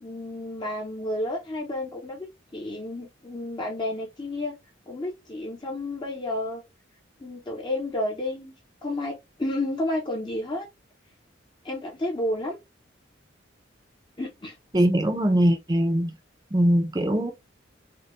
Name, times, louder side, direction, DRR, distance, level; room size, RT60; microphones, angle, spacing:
voice 1, 0.0-4.5 4.9-6.6 7.2-8.5 8.8-10.7 11.6-12.6 14.2-14.6, left 1 dB, 25° left, 0.7 m, -31 dB
voice 2, 14.7-16.1 16.5-17.3, equal, 20° right, 0.7 m, -21 dB
4.3 x 2.3 x 2.9 m
head